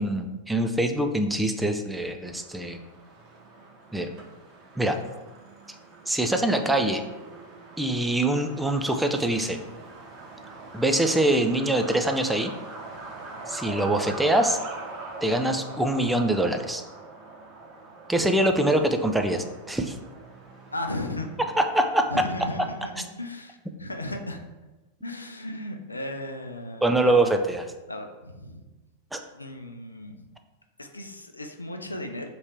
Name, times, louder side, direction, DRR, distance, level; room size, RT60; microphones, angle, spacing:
voice 1, 0.0-2.8 3.9-4.1 4.8-5.0 6.1-7.0 7.8-9.6 10.7-12.5 13.5-14.6 15.2-16.8 18.1-19.9 21.6-22.1 26.8-27.7 29.1-29.2, right 1 dB, 5° right, 5 dB, 0.3 m, -24 dB
Truck, 2.2-22.2, right 3 dB, 40° right, 0.8 m, -43 dB
voice 2, 20.7-21.3 22.1-24.4 25.0-27.4 27.9-28.6 29.3-30.3 30.8-32.3, left 1 dB, 80° left, 4 dB, 0.4 m, -35 dB
3.0 x 2.8 x 4.4 m, 1.1 s
figure-of-eight pair, 90°, 0 cm